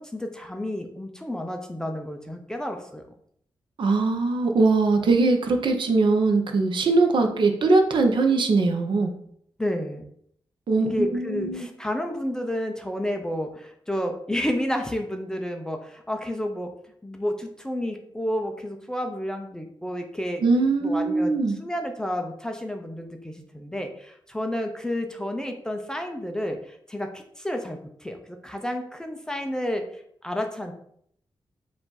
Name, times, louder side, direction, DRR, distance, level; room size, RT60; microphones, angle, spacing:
voice 1, 0.0-3.0 9.6-10.1 10.8-16.7 17.0-20.4 20.8-29.8 30.2-30.7, left 1 dB, 5° left, 4 dB, 0.4 m, -31 dB
voice 2, 3.8-9.1 10.7-11.7 20.4-21.6, right 3 dB, 60° right, 5 dB, 0.6 m, -21 dB
4.7 x 2.5 x 3.9 m, 0.67 s
wide cardioid pair, 160°, 9 cm